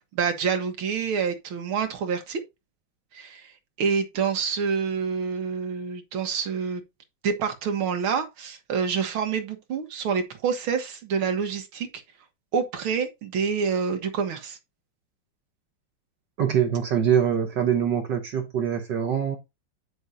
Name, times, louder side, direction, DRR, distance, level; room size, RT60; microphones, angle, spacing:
voice 1, 0.1-2.4 3.1-3.5 3.8-6.8 7.2-11.9 12.5-14.6, right 6 dB, 80° right, 2.2 m, -27 dB
voice 2, 16.4-19.4, right 8 dB, 60° right, 1.6 m, -24 dB
9.8 x 6.2 x 2.7 m
omnidirectional pair, 2.3 m